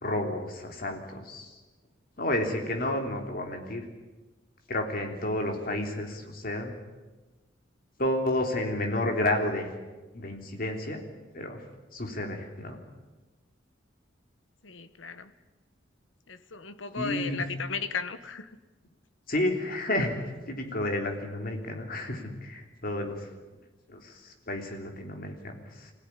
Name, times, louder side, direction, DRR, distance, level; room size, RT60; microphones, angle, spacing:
voice 1, 0.0-1.5 2.2-3.9 4.7-6.7 8.0-9.7 10.1-11.0 11.3-11.6 11.9-12.8 16.9-17.4 19.3-20.1 20.5-23.3 23.9-25.9, left 1 dB, 50° left, 3 dB, 3.6 m, -31 dB
voice 2, 14.6-15.3 16.3-18.5, left 5 dB, 90° left, 11 dB, 1.4 m, -35 dB
24.5 x 16.5 x 9.9 m, 1.2 s
head